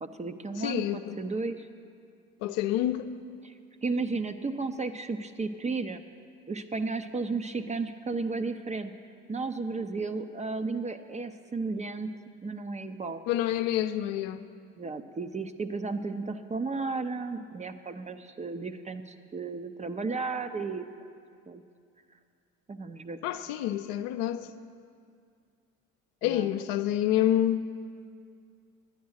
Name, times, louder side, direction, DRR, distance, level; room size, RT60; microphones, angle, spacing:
voice 1, 0.0-1.7 3.4-3.5 3.8-6.0 6.5-8.9 9.3-12.1 12.4-13.2 14.8-20.9 21.5-21.6 22.7-23.2 26.2-26.5, right 3 dB, 20° right, 0.6 m, -33 dB
voice 2, 0.6-1.2 2.4-3.1 13.3-14.4 23.2-24.5 26.2-27.7, left 12 dB, 65° left, 0.7 m, -28 dB
10.0 x 9.4 x 6.4 m
hypercardioid pair, 75°, 39 cm